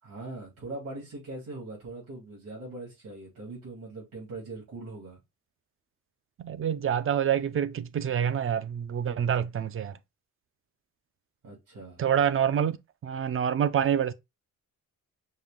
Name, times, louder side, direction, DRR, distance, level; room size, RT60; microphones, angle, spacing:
voice 1, 0.0-5.2 11.4-12.0, right 2 dB, 75° right, 2.9 m, -41 dB
voice 2, 6.4-10.0 12.0-12.8 13.0-14.1, right 9 dB, 40° right, 0.4 m, -26 dB
5.5 x 2.5 x 3.6 m
cardioid pair, 130°, 33 cm